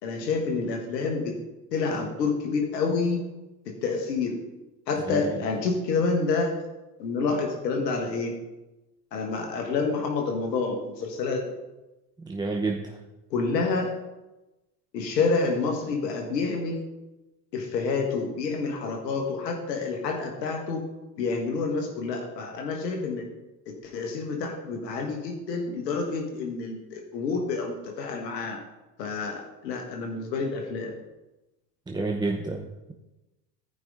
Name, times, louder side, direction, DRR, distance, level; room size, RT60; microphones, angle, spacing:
voice 1, 0.0-1.3 1.7-3.2 3.6-4.4 4.9-6.6 7.0-8.3 9.1-11.4 13.3-13.9 14.9-16.8 17.5-20.8 21.2-23.2 23.7-28.6 29.0-30.9, left 4 dB, 90° left, 2 dB, 1.6 m, -28 dB
voice 2, 12.2-13.0 31.9-32.9, right 3 dB, 10° right, 2 dB, 0.7 m, -30 dB
13.5 x 5.3 x 3.7 m, 1.0 s
hypercardioid pair, 90°, 48 cm